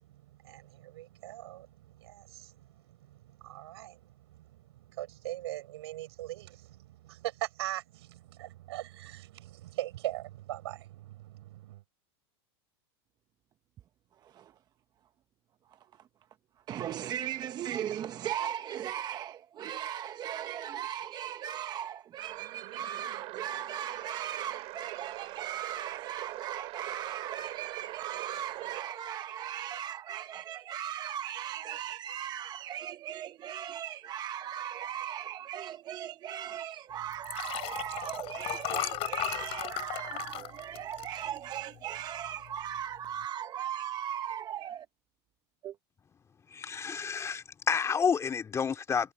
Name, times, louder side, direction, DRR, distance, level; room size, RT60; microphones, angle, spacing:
voice 1, 0.1-11.8, right 15 dB, 80° right, 4.7 m, -41 dB
voice 2, 14.2-14.5 15.7-16.1 16.7-44.9 45.6-45.8, right 10 dB, 30° right, 0.9 m, -38 dB
sound 1, 22.2-28.9, right 20 dB, 50° right, 2.9 m, -42 dB
Liquid, 37.1-41.8 42.3-42.5 42.8-42.9, left 17 dB, 45° left, 7.0 m, -36 dB
voice 3, 46.5-49.1, left 6 dB, 20° left, 2.3 m, -30 dB
supercardioid pair, 125°, 13 cm